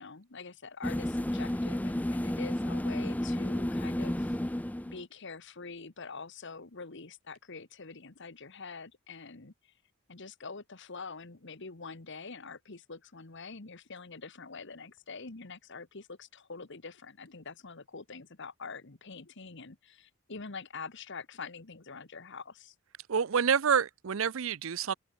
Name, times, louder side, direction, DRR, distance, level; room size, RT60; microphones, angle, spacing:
voice 1, 0.0-4.4 4.8-9.7 10.1-22.7, left 4 dB, 55° left, 1.4 m, -45 dB
sound 1, 0.8-5.0, left 1 dB, 5° left, 0.5 m, -32 dB
voice 2, 23.1-24.9, right 7 dB, 65° right, 0.6 m, -27 dB
open air
head